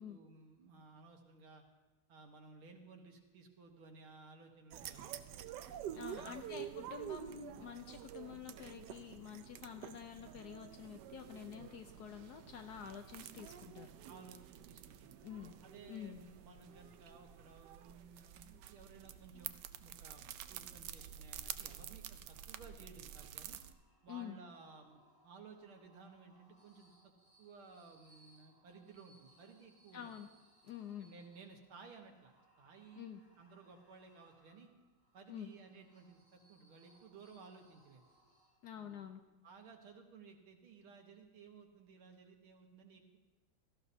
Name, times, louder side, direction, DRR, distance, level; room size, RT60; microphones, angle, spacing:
voice 1, 0.0-1.6 2.1-5.3 5.9-6.4 14.1-15.1 15.6-19.5 19.8-23.6 24.0-27.1 27.4-30.1 31.0-33.1 33.4-34.7 35.1-38.1 38.8-39.0 39.4-43.2, right 4 dB, 90° right, 3 dB, 2.2 m, -57 dB
sound 1, 4.7-23.7, right 10 dB, 70° right, 1.0 m, -49 dB
voice 2, 5.9-13.9 15.2-15.6 15.9-16.2 24.1-24.4 29.9-30.3 30.6-31.1 33.0-33.2 35.3-35.5 38.6-39.2, left 8 dB, 70° left, 7 dB, 1.0 m, -48 dB
sound 2, 23.3-38.9, right 1 dB, 5° left, 4.8 m, -70 dB
17.5 x 13.5 x 2.8 m, 1.1 s
omnidirectional pair, 2.2 m